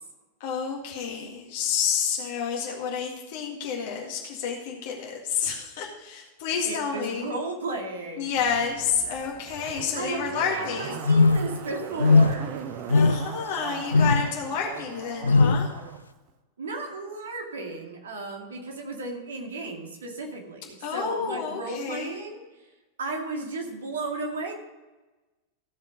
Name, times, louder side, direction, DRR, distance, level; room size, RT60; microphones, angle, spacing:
voice 1, 0.4-7.3 8.2-11.1 12.9-15.7 20.8-22.1, left 6 dB, 50° left, 0 dB, 1.8 m, -30 dB
voice 2, 6.6-8.4 9.9-12.6 16.6-22.7 23.0-24.5, right 3 dB, 65° right, 2 dB, 2.2 m, -34 dB
Zipper (clothing), 8.4-16.0 16.3-16.4, right 8 dB, 45° right, 0.8 m, -40 dB
sound 1, 11.0-11.6 12.0-12.5 12.9-13.4 13.9-14.3 15.2-15.7, left 3 dB, 75° left, 0.4 m, -19 dB
15.0 x 5.7 x 5.3 m, 1.2 s
figure-of-eight pair, 90°, 0 cm